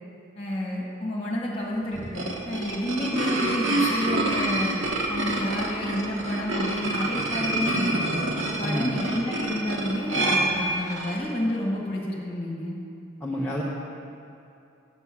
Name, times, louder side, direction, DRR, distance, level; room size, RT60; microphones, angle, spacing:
voice 1, 0.3-4.7 5.1-8.2 8.6-12.8, left 1 dB, 30° left, -3 dB, 2.0 m, -30 dB
sound 1, 1.9-11.3, right 2 dB, 80° right, 1.3 m, -27 dB
voice 2, 8.6-8.9 13.2-13.6, equal, 10° left, -6 dB, 0.8 m, -29 dB
8.3 x 8.2 x 6.2 m, 2.6 s
head